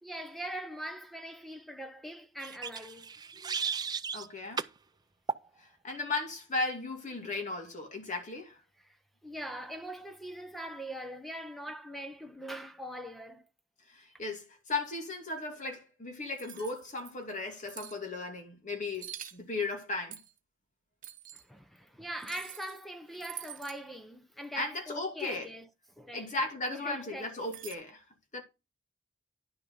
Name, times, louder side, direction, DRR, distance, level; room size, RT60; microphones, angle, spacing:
voice 1, 0.0-3.8 8.8-9.0 9.2-13.5 14.1-14.2 21.3-25.7 26.0-26.3 26.7-27.5, right 1 dB, ahead, 0.9 m, -42 dB
sound 1, 2.4-4.3 4.6-4.8 5.3-5.5, right 5 dB, 20° right, 0.5 m, -35 dB
voice 2, 4.1-4.6 5.6-8.6 13.9-20.2 24.5-25.5 26.1-28.0 28.3-28.4, left 3 dB, 40° left, 2.7 m, -36 dB
sound 2, 16.4-17.1 17.7-18.0 18.9-19.4 20.1-20.4 21.0-21.4 22.2-22.8 23.1-23.8 27.4-27.8, right 11 dB, 45° right, 1.1 m, -46 dB
11.0 x 6.3 x 3.9 m
head